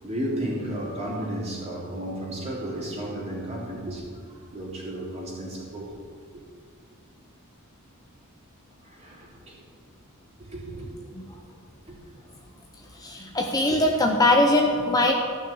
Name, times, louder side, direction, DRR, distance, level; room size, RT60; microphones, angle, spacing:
voice 1, 0.0-6.0 8.8-9.6 10.4-11.1 11.9-12.3 13.7-13.8, right 1 dB, 30° right, -4 dB, 3.3 m, -34 dB
voice 2, 13.0-15.1, left 1 dB, 15° left, 1 dB, 0.8 m, -21 dB
14.0 x 6.1 x 8.6 m, 2.2 s
head